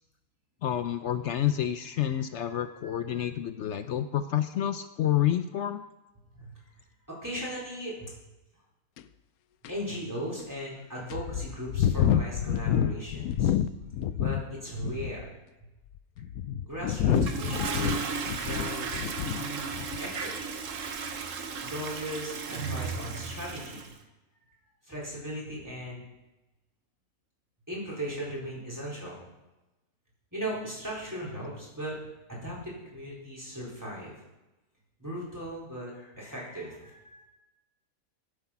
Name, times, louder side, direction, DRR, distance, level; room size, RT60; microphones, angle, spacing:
voice 1, 0.6-5.8, left 11 dB, 65° left, 11 dB, 0.8 m, -29 dB
voice 2, 2.0-3.3 6.3-6.5 7.2-8.1 9.7-13.5 14.1-15.4 16.6-19.0 19.4-19.7 20.0-20.3 21.6-23.9 24.8-26.0 27.7-29.2 30.3-32.0 32.3-34.1 35.0-37.2, equal, 10° right, -5 dB, 4.1 m, -38 dB
sound 1, 9.0-9.1 9.6-9.7 10.4-10.5 11.1-14.5 14.8-15.3 16.0-19.4 19.7-20.1, left 10 dB, 85° left, 1.1 m, -28 dB
Toilet flush, 17.1-23.9, right 5 dB, 60° right, 1.3 m, -35 dB
12.5 x 8.0 x 5.8 m, 1.0 s
omnidirectional pair, 1.5 m